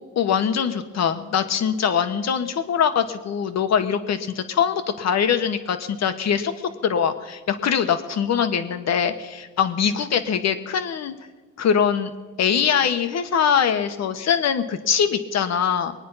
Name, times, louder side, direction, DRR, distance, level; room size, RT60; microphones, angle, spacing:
voice 1, 0.2-6.5 6.8-11.1 11.6-12.1 12.4-15.9, left 7 dB, 60° left, 9 dB, 1.3 m, -22 dB
21.0 x 9.4 x 5.6 m, 1.3 s
cardioid pair, 90°, 30 cm